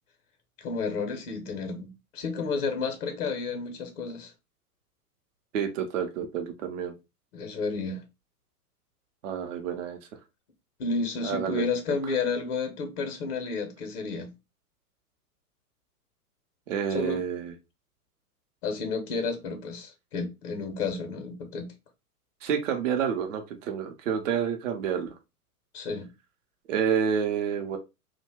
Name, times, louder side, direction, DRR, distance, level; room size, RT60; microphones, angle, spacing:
voice 1, 0.6-4.3 7.3-8.0 10.8-14.3 16.9-17.2 18.6-21.7 25.7-26.1, left 4 dB, 45° left, 0.7 m, -31 dB
voice 2, 5.5-6.9 9.2-10.0 11.2-11.6 16.7-17.5 22.4-25.1 26.7-27.8, right 7 dB, 55° right, 0.7 m, -29 dB
2.6 x 2.1 x 3.3 m
figure-of-eight pair, 105°, 46 cm